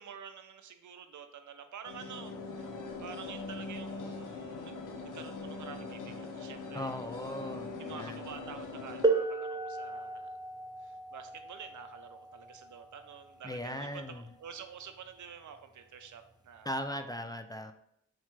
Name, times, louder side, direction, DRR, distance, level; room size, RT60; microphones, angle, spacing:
voice 1, 0.0-2.7 3.0-4.7 5.1-7.0 7.8-10.3 10.8-17.2, right 7 dB, 75° right, 8 dB, 0.6 m, -48 dB
sound 1, 1.8-9.1, left 3 dB, 85° left, 0.7 m, -42 dB
voice 2, 6.7-8.2 13.4-14.2 16.6-17.7, equal, 15° left, 7 dB, 0.3 m, -38 dB
sound 2, 9.0-14.5 15.5-15.6 16.4-16.7, right 3 dB, 15° right, 0.7 m, -35 dB
4.4 x 2.4 x 4.5 m, 0.76 s
cardioid pair, 60°, 30 cm